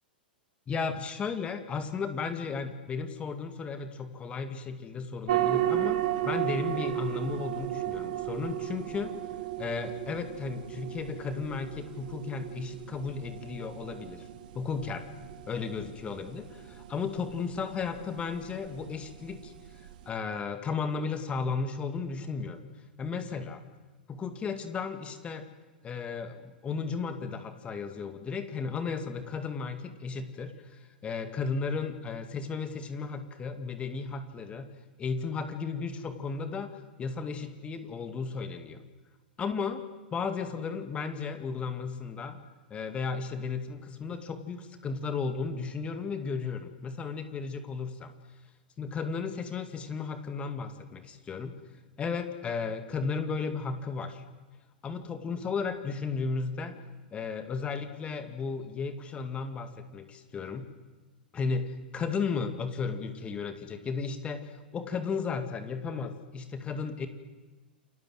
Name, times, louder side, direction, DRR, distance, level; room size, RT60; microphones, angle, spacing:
voice 1, 0.7-6.0 6.2-9.1 9.6-14.3 14.5-15.0 15.5-19.5 20.1-22.6 23.0-23.6 24.1-25.5 25.8-34.7 35.0-38.8 39.4-39.8 40.1-42.4 42.7-48.1 48.8-51.6 52.0-54.2 54.8-56.8 57.1-60.7 61.3-67.1, left 5 dB, 20° left, 8 dB, 2.4 m, -34 dB
sound 1, 5.3-20.1, right 12 dB, 60° right, 2.1 m, -35 dB
28.5 x 22.5 x 8.0 m, 1.3 s
figure-of-eight pair, 100°, 5 cm